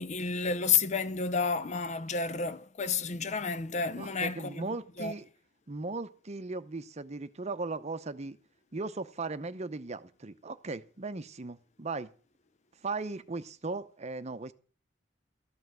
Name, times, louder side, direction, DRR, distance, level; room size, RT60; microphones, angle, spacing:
voice 1, 0.0-4.7 5.0-5.1, left 5 dB, 40° left, 0.6 m, -30 dB
voice 2, 4.0-5.3 5.7-8.4 8.7-12.1 12.8-14.5, right 3 dB, 35° right, 0.7 m, -37 dB
13.5 x 5.7 x 7.7 m
head